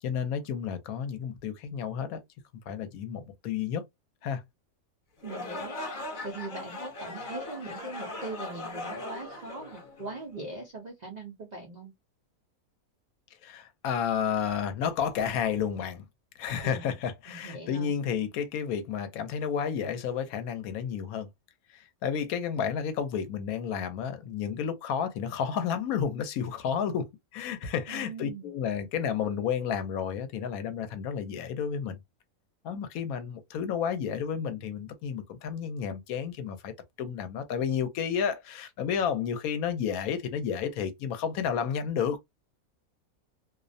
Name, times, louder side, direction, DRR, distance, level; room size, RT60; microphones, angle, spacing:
voice 1, 0.0-2.2 2.7-3.8 4.2-4.4 13.4-16.1 16.4-21.3 21.7-32.0 32.6-36.7 37.0-42.2, left 7 dB, 80° left, 1.0 m, -31 dB
sound 1, 5.2-10.4, left 2 dB, 45° left, 0.7 m, -39 dB
voice 2, 5.2-5.8 6.2-11.9 16.6-17.0 17.3-17.9 27.9-28.5, right 2 dB, 70° right, 0.4 m, -41 dB
2.6 x 2.0 x 2.5 m
omnidirectional pair, 1.5 m